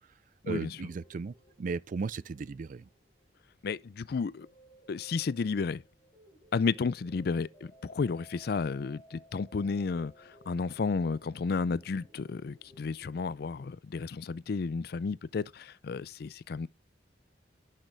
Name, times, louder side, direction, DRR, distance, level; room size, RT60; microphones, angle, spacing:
voice 1, 0.5-2.9, right 4 dB, 45° right, 0.4 m, -36 dB
sound 1, 0.8-13.7, right 1 dB, 15° left, 5.5 m, -60 dB
voice 2, 3.6-4.5 4.9-5.8 6.5-10.1 10.5-16.7, left 4 dB, 60° left, 0.4 m, -32 dB
10.0 x 6.5 x 3.3 m
head